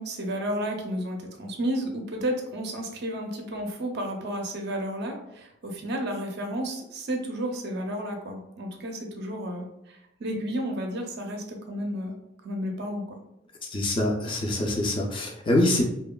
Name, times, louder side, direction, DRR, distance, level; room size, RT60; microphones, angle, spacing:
voice 1, 0.0-12.2 12.4-13.2, equal, 55° right, 3 dB, 0.5 m, -32 dB
voice 2, 13.7-15.8, left 1 dB, 25° left, 1 dB, 0.3 m, -24 dB
2.8 x 2.2 x 2.2 m, 0.85 s
head